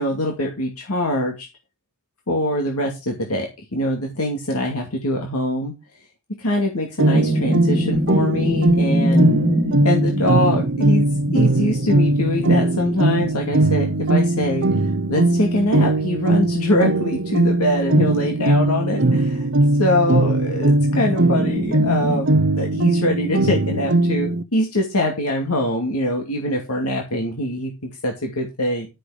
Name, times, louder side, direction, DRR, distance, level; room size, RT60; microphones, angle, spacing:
voice 1, 0.0-1.5 2.3-5.7 6.4-9.3 9.8-11.1 11.3-19.5 19.8-28.9, left 1 dB, 90° left, 2 dB, 2.5 m, -23 dB
sound 1, 7.0-24.4, right 2 dB, 60° right, 0.8 m, -20 dB
sound 2, 7.1-14.6 15.0-15.2 15.6-17.2 20.4-22.2, left 1 dB, 5° right, 1.3 m, -25 dB
11.5 x 6.8 x 5.0 m, 0.25 s
head